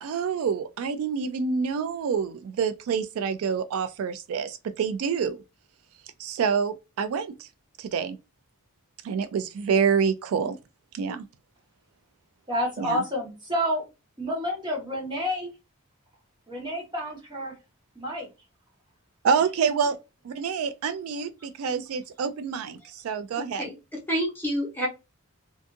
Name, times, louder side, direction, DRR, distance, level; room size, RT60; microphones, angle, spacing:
voice 1, 0.0-5.4 6.2-7.5 7.8-8.2 9.0-10.6 10.9-11.3 12.8-13.0 19.2-20.0 20.2-23.6, right 6 dB, 75° right, 0.3 m, -27 dB
voice 2, 12.5-13.8 14.2-15.5 16.5-17.5 17.9-18.3 19.6-19.7, equal, 20° right, 1.0 m, -29 dB
voice 3, 23.3-24.9, equal, 10° left, 0.8 m, -29 dB
2.5 x 2.4 x 2.5 m
head